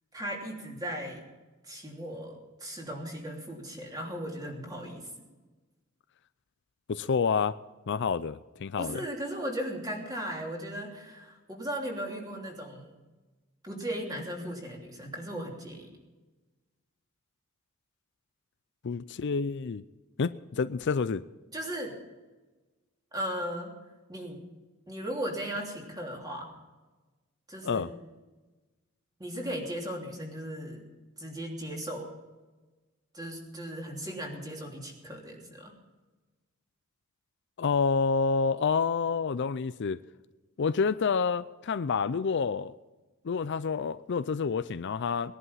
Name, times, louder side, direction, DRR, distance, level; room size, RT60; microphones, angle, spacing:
voice 1, 0.1-1.2 1.6-5.1 8.8-12.9 13.6-15.9 21.5-21.9 23.1-23.7 24.1-24.4 24.9-26.5 27.5-27.9 29.2-30.8 31.2-32.1 33.1-35.7, equal, 15° right, 0 dB, 3.1 m, -37 dB
voice 2, 6.9-7.5 7.9-9.0 18.8-19.8 20.2-21.2 27.6-27.9 37.6-40.0 40.6-42.7 43.2-45.4, left 5 dB, 50° left, 14 dB, 0.4 m, -28 dB
20.0 x 11.0 x 5.6 m, 1.2 s
head